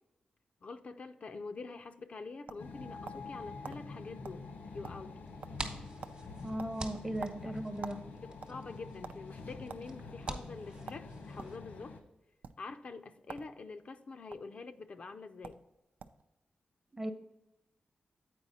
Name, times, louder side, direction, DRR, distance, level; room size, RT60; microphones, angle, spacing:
voice 1, 0.6-4.5 4.7-5.2 8.2-12.0 12.6-15.6, left 4 dB, 50° left, 7 dB, 0.4 m, -46 dB
sound 1, 1.9-3.3 3.6-3.8 4.2-4.4 4.7-5.2 5.4-5.7 6.0-6.2 6.6-8.0 8.3-9.2 9.7-9.8 10.3-10.4 10.9-11.6 12.3-12.5 13.2-13.5 13.8-14.4 15.1-15.2 15.4-15.6 16.0-16.3, right 6 dB, 75° right, 0.4 m, -46 dB
sound 2, 2.6-12.0, left 3 dB, 90° left, 1.0 m, -47 dB
sound 3, 5.3-11.6, right 2 dB, 35° right, 1.0 m, -47 dB
voice 2, 6.4-8.2 17.0-17.1, right 1 dB, 15° right, 8 dB, 0.6 m, -37 dB
8.2 x 4.7 x 4.1 m, 0.96 s
wide cardioid pair, 120°, 3 cm